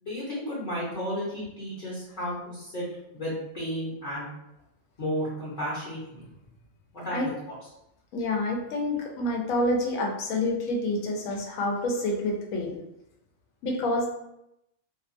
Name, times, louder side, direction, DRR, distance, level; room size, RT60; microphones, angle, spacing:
voice 1, 0.0-2.9 3.1-4.3 5.0-6.3 6.9-7.3, equal, 40° left, -8 dB, 0.8 m, -33 dB
voice 2, 8.1-12.7 13.6-14.1, left 1 dB, 80° left, 0 dB, 1.1 m, -28 dB
2.7 x 2.2 x 2.5 m, 0.84 s
omnidirectional pair, 1.4 m